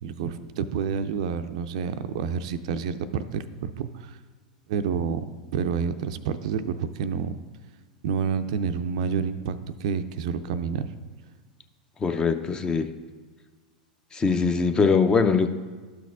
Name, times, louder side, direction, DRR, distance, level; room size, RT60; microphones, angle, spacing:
voice 1, 0.0-4.2 4.7-7.4 8.0-10.9, right 6 dB, 60° right, 11 dB, 0.4 m, -29 dB
voice 2, 12.0-12.9 14.1-15.5, left 5 dB, 20° left, 8 dB, 0.5 m, -22 dB
12.0 x 6.0 x 2.4 m, 1.4 s
figure-of-eight pair, 90°, 4 cm